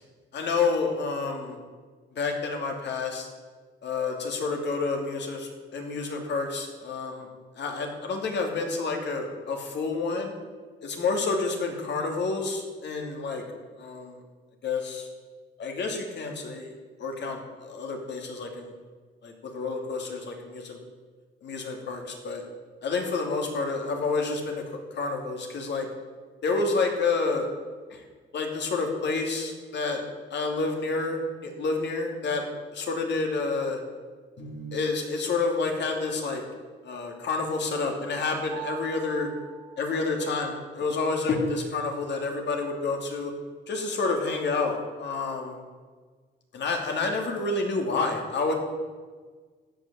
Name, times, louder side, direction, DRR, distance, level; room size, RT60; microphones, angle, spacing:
voice 1, 0.3-1.6 2.1-3.3 3.8-7.3 7.6-10.3 10.8-13.4 13.8-14.2 14.6-15.1 15.6-16.7 17.0-18.7 19.2-20.8 21.4-22.4 22.8-24.6 24.9-25.9 26.4-27.5 27.9-28.1 28.3-30.0 30.3-32.4 32.7-33.8 34.4-36.4 36.8-39.3 39.8-43.3 43.7-45.6 46.5-48.5, left 3 dB, 60° left, 2 dB, 2.7 m, -29 dB
Mallet percussion, 38.5-41.0, right 11 dB, 70° right, 2.2 m, -44 dB
14.5 x 6.0 x 8.7 m, 1.5 s
cardioid pair, 90°, 20 cm